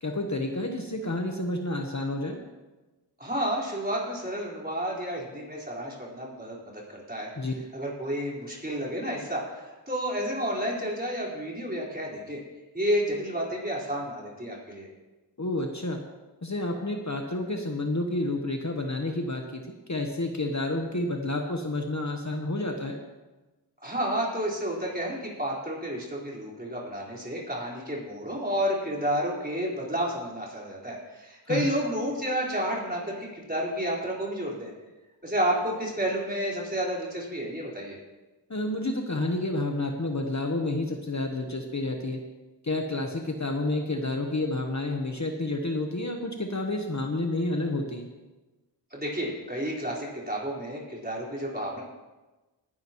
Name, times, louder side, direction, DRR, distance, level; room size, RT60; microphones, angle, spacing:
voice 1, 0.0-2.5 7.4-7.5 15.4-16.0 16.4-23.0 31.5-31.7 38.5-42.2 42.6-48.1, left 2 dB, 40° left, 3 dB, 1.1 m, -30 dB
voice 2, 3.2-7.3 7.7-12.4 12.7-14.9 23.8-34.7 35.2-38.0 48.9-51.8, equal, 20° right, -5 dB, 4.5 m, -31 dB
19.0 x 11.0 x 3.1 m, 1.2 s
wide cardioid pair, 55°, 42 cm